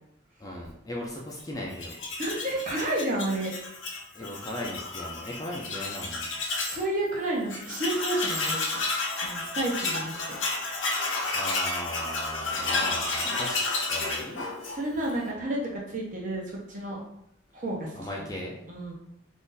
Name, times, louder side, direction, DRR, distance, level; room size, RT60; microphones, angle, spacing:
voice 1, 0.4-1.9 4.1-6.3 9.8-9.9 11.3-13.6 13.9-14.5 17.9-18.6, left 1 dB, 20° left, -2 dB, 0.4 m, -37 dB
Tools, 1.7-6.8 7.2-7.3 7.5-15.1, left 3 dB, 70° left, 0.7 m, -31 dB
voice 2, 2.2-3.5 6.7-8.6 9.2-10.4 14.7-17.0 17.5-17.9 18.2-18.3 18.7-18.9, right 1 dB, 40° right, -3 dB, 0.7 m, -30 dB
2.6 x 2.5 x 3.8 m, 0.77 s
head